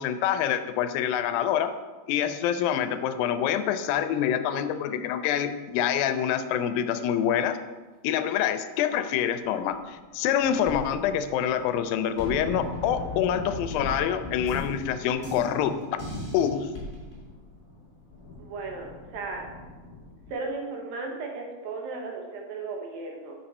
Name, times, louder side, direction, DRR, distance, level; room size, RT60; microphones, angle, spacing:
voice 1, 0.0-1.7 2.1-7.6 8.0-15.8 16.3-16.7, left 9 dB, 90° left, 10 dB, 2.4 m, -26 dB
sound 1, 9.5-10.5 10.8-20.3, left 3 dB, 35° left, 1.3 m, -41 dB
sound 2, 10.4-11.8 12.2-17.3, left 1 dB, 15° left, 1.7 m, -40 dB
voice 2, 18.4-19.4 20.3-23.4, right 3 dB, 80° right, 1 dB, 2.9 m, -35 dB
7.8 x 6.5 x 4.1 m, 1.3 s
omnidirectional pair, 4.1 m